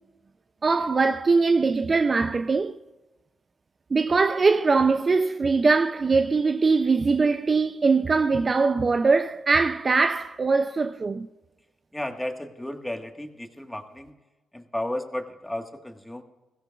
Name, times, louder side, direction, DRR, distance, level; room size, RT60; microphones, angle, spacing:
voice 1, 0.6-2.8 3.9-11.3, right 4 dB, 35° right, 0.4 m, -22 dB
voice 2, 11.9-14.1 14.5-16.2, left 1 dB, 10° left, 1.5 m, -33 dB
21.0 x 16.0 x 2.4 m
supercardioid pair, 70°, 0 cm